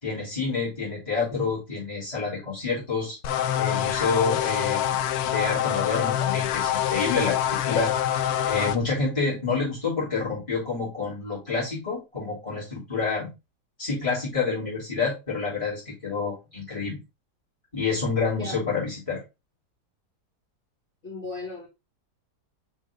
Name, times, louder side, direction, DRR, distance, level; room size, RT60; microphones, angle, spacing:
voice 1, 0.0-3.2 3.6-4.8 5.2-7.4 7.7-7.9 8.5-13.3 13.8-17.0 17.7-19.2, left 4 dB, 20° left, -8 dB, 3.8 m, -28 dB
sound 1, 3.2-8.8, left 10 dB, 70° left, 1.1 m, -25 dB
voice 2, 21.0-21.7, left 2 dB, 45° left, -7 dB, 3.2 m, -36 dB
6.0 x 5.5 x 3.7 m, 0.25 s
omnidirectional pair, 1.8 m